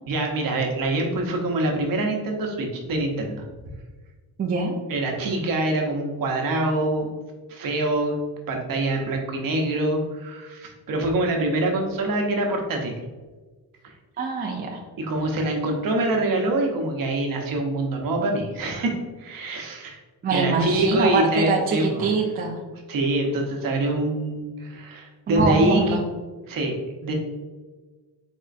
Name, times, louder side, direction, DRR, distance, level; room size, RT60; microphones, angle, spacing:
voice 1, 0.1-3.4 4.9-7.1 7.5-8.2 8.5-13.0 13.8-13.9 15.0-20.0 20.3-22.1 22.9-26.0 26.5-27.1, right 2 dB, 55° right, 1 dB, 0.8 m, -25 dB
voice 2, 4.4-4.8 14.2-14.8 20.2-22.6 25.3-26.0, right 4 dB, 25° right, 0 dB, 0.3 m, -24 dB
4.3 x 3.6 x 2.5 m, 1.3 s
cardioid pair, 170°, 40 cm